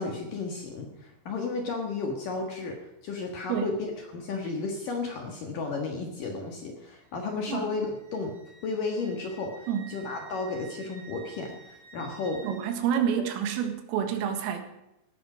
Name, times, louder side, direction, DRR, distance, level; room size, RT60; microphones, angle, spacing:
voice 1, 0.0-2.8 3.0-8.3 8.6-12.5, left 3 dB, 60° left, 2 dB, 2.5 m, -33 dB
Wind instrument woodwind instrument, 7.0-12.8, right 6 dB, 60° right, 4.2 m, -51 dB
voice 2, 12.4-14.6, right 8 dB, 85° right, 6 dB, 4.2 m, -28 dB
17.0 x 13.0 x 5.1 m, 0.89 s
omnidirectional pair, 5.8 m